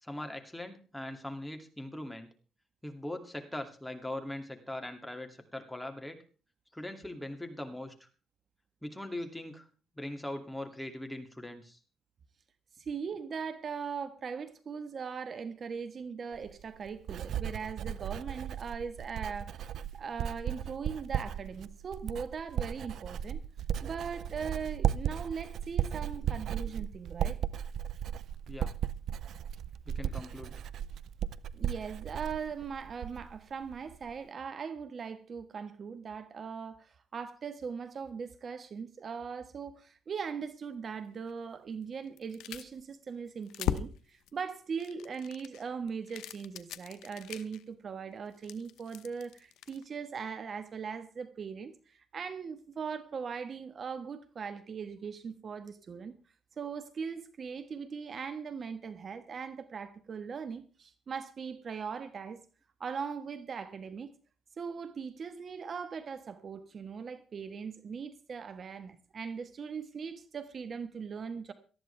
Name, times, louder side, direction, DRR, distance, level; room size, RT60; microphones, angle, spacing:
voice 1, 0.0-2.3 2.8-6.2 6.7-7.9 8.8-9.7 9.9-11.8 28.5-28.7 29.9-30.6, left 1 dB, 5° left, 2.6 m, -41 dB
voice 2, 12.8-19.6 19.9-23.4 23.8-27.4 31.5-56.1 56.6-62.4 62.8-64.1 64.6-71.5, right 6 dB, 50° right, 1.4 m, -40 dB
Writing, 16.3-33.4 33.7-34.1, right 9 dB, 70° right, 0.6 m, -36 dB
sound 1, 41.3-41.4 42.1-42.9 43.3-44.3 44.8-47.6 48.3-49.9, left 12 dB, 85° left, 0.9 m, -39 dB
18.5 x 13.5 x 3.4 m
cardioid pair, 90°, 0 cm